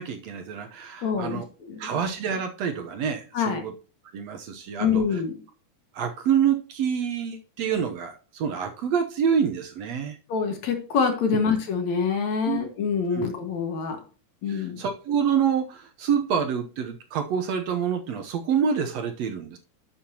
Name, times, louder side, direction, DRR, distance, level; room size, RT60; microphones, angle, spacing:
voice 1, 0.0-1.5 1.8-3.7 4.1-5.2 5.9-10.2 12.5-12.6 13.1-13.3 14.5-19.6, right 7 dB, 65° right, 6 dB, 1.9 m, -27 dB
voice 2, 1.0-1.4 1.7-2.0 3.3-3.6 4.8-5.3 10.3-14.0 14.4-14.8, left 6 dB, 65° left, 5 dB, 2.9 m, -25 dB
11.0 x 7.3 x 2.9 m, 0.36 s
omnidirectional pair, 3.6 m